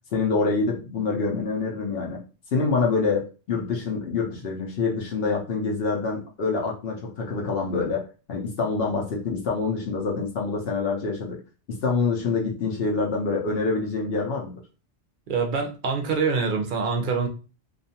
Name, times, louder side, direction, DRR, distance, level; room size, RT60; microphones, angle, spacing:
voice 1, 0.1-2.2 2.5-8.0 8.3-11.4 11.7-14.6, left 4 dB, 60° left, -1 dB, 0.8 m, -26 dB
voice 2, 15.3-17.3, right 5 dB, 55° right, 2 dB, 0.6 m, -25 dB
2.4 x 2.3 x 2.7 m, 0.34 s
omnidirectional pair, 1.2 m